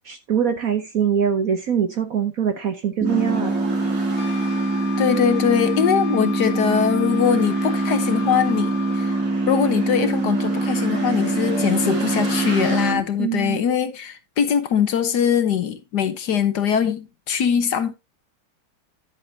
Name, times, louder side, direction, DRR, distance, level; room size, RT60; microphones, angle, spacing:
voice 1, 0.1-3.5 13.2-13.6, right 8 dB, 55° right, 1.1 m, -23 dB
sound 1, 3.0-13.0, right 2 dB, 10° right, 0.7 m, -24 dB
sound 2, 3.0-12.9, right 2 dB, 85° right, 6.0 m, -35 dB
Wind instrument woodwind instrument, 4.2-9.3, left 19 dB, 90° left, 1.8 m, -37 dB
voice 2, 5.0-9.1 9.5-17.9, left 8 dB, 60° left, 1.4 m, -22 dB
10.5 x 8.3 x 2.8 m
omnidirectional pair, 2.2 m